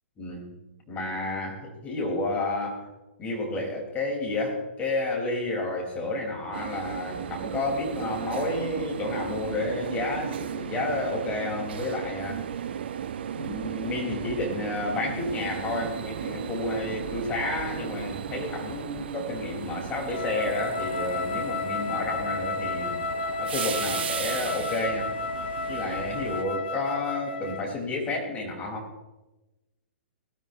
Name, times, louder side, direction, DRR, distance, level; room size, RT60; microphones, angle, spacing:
voice 1, 0.2-0.6 0.9-2.9 3.2-12.4 13.3-23.0 23.4-25.1 25.7-28.9, left 2 dB, 20° left, -1 dB, 5.3 m, -31 dB
sound 1, 6.5-26.4, right 8 dB, 55° right, 0.9 m, -36 dB
Wind instrument woodwind instrument, 20.1-27.8, left 3 dB, 55° left, 1.2 m, -32 dB
21.0 x 13.5 x 3.2 m, 1.1 s
figure-of-eight pair, 115°, 7 cm